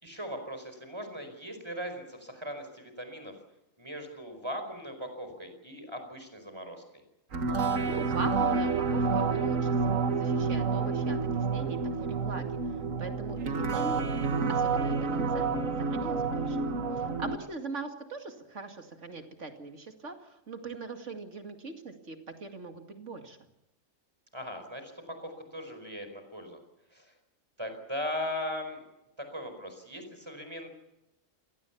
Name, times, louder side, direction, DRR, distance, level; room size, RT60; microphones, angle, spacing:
voice 1, 0.0-3.3 3.8-7.0 17.0-17.1 24.3-24.9 25.2-26.6 26.9-27.0 27.6-28.8 29.2-30.7, left 1 dB, 20° right, 6 dB, 4.8 m, -39 dB
sound 1, 7.3-17.4, right 4 dB, 80° right, 1.9 m, -29 dB
voice 2, 7.9-9.7 10.1-12.5 13.0-14.2 14.5-15.5 15.8-16.6 17.0-23.4, right 3 dB, 65° right, 5 dB, 2.7 m, -41 dB
27.5 x 18.5 x 7.1 m, 0.90 s
omnidirectional pair, 1.3 m